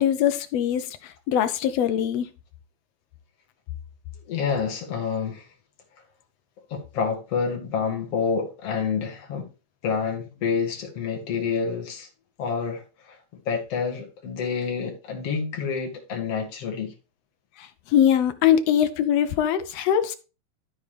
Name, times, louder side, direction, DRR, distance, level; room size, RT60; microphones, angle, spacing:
voice 1, 0.0-2.3 17.6-20.2, left 9 dB, 75° left, 1.6 m, -22 dB
voice 2, 4.3-5.5 6.7-9.5 9.8-12.1 12.4-13.2 13.5-16.9, left 6 dB, 55° left, 2.6 m, -28 dB
13.0 x 4.8 x 3.4 m
omnidirectional pair, 3.5 m